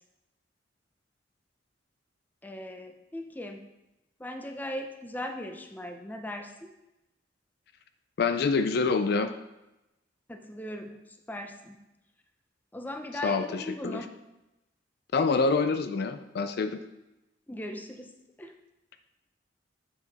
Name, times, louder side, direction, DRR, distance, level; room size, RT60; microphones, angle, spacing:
voice 1, 2.4-3.6 4.2-6.7 10.3-11.0 11.3-11.8 12.7-14.1 17.5-18.1 18.4-18.5, left 1 dB, 10° left, 4 dB, 0.6 m, -38 dB
voice 2, 8.2-9.3 13.2-14.0 15.1-16.8, left 4 dB, 60° left, 9 dB, 0.4 m, -26 dB
7.8 x 5.0 x 4.0 m, 0.95 s
head